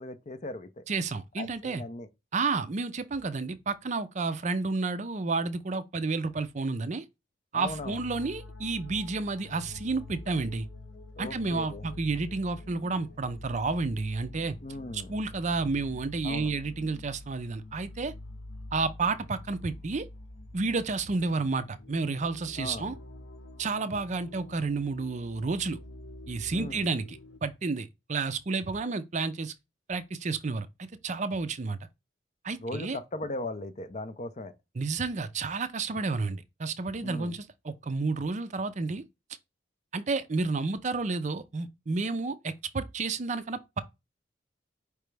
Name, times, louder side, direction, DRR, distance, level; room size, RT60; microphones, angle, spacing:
voice 1, 0.0-0.8 1.4-2.1 7.5-8.0 11.2-11.9 14.6-15.2 16.2-16.5 22.6-22.9 26.5-26.9 32.6-34.5 37.0-37.3, left 2 dB, 40° left, 0.6 m, -38 dB
voice 2, 0.9-1.8 2.3-7.0 7.5-10.7 11.2-14.5 14.9-18.1 18.7-20.0 20.5-22.9 23.6-25.8 26.3-29.5 29.9-31.8 32.4-33.0 34.8-39.0 39.9-43.8, right 3 dB, 40° right, 0.5 m, -31 dB
sound 1, 7.6-27.4, left 2 dB, 80° left, 0.8 m, -46 dB
4.9 x 3.3 x 3.2 m
head